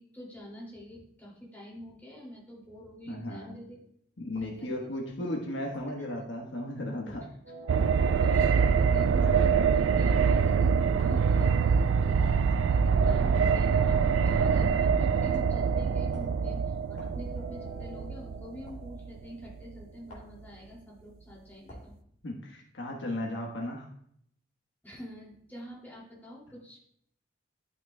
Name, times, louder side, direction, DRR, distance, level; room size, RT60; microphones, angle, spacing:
voice 1, 0.0-3.8 4.4-4.7 6.0-6.1 8.2-8.5 8.8-21.9 24.8-26.9, equal, 10° left, -5 dB, 2.5 m, -46 dB
voice 2, 3.1-3.6 4.2-7.3 22.2-23.9, left 1 dB, 70° left, 0 dB, 1.2 m, -35 dB
sound 1, 4.3-4.6 5.7-6.0 7.1-7.3 8.3-8.5 9.5-9.7 11.0-11.2 12.5-12.7 14.2-14.5 15.3-15.6 16.1-16.4 17.0-17.2 18.7-18.8 20.1-20.4 21.7-21.9, equal, 40° left, 2.5 m, -49 dB
sound 2, 7.4-19.1, right 1 dB, 50° right, 2.1 m, -49 dB
sound 3, 7.7-19.5 19.8-19.9, right 6 dB, 80° right, 0.3 m, -25 dB
12.0 x 6.0 x 2.2 m, 0.70 s
head